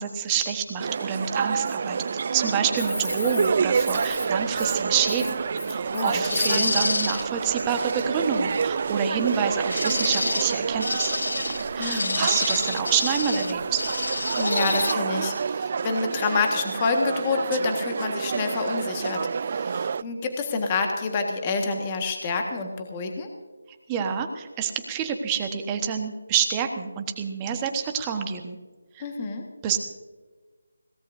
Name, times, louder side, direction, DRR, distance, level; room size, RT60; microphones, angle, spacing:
voice 1, 0.0-5.4 5.7-11.1 11.7-13.8 23.9-28.6 28.9-29.0 29.6-29.8, right 7 dB, 15° right, 5 dB, 1.2 m, -27 dB
sound 1, 0.8-20.0, right 6 dB, 35° right, 0.3 m, -28 dB
sound 2, 2.8-14.9, left 2 dB, 75° left, 0.7 m, -29 dB
voice 2, 5.9-6.7 11.8-12.2 14.4-19.2 19.5-23.3 29.0-29.4, left 4 dB, 20° left, 3 dB, 1.5 m, -28 dB
22.0 x 17.5 x 2.7 m, 1.3 s
figure-of-eight pair, 170°, 0 cm